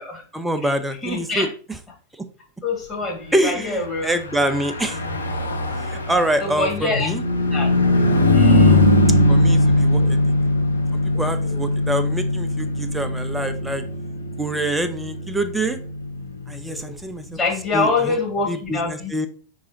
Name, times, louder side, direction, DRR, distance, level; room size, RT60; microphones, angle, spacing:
voice 1, 0.3-1.5 3.3-5.0 5.9-7.2 9.3-10.0 10.9-13.8 14.4-15.8 16.5-17.2 17.7-18.2 18.5-19.3, right 1 dB, 5° right, 8 dB, 0.5 m, -25 dB
voice 2, 1.0-1.5 2.6-4.2 6.4-7.1 7.5-7.7 8.1-8.9 10.0-10.1 11.1-11.5 13.3-13.6 16.7-16.9 17.3-19.1, left 3 dB, 20° left, -2 dB, 1.9 m, -26 dB
Car passing by / Truck, 4.1-17.8, left 1 dB, 75° left, 0.6 m, -20 dB
4.7 x 3.8 x 2.8 m, 0.40 s
figure-of-eight pair, 90°, 0 cm